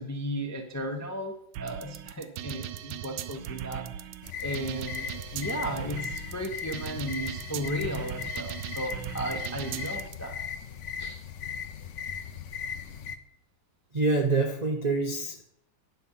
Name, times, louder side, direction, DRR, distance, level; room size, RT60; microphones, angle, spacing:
voice 1, 0.0-4.1 4.4-10.4 11.0-11.2, equal, 25° left, 4 dB, 0.4 m, -35 dB
sound 1, 1.5-10.1, right 11 dB, 80° right, 1.4 m, -38 dB
sound 2, 4.2-13.2, left 7 dB, 65° left, 0.7 m, -38 dB
voice 2, 13.9-15.4, right 3 dB, 55° right, 2 dB, 0.4 m, -26 dB
9.7 x 6.4 x 5.6 m, 0.68 s
omnidirectional pair, 2.1 m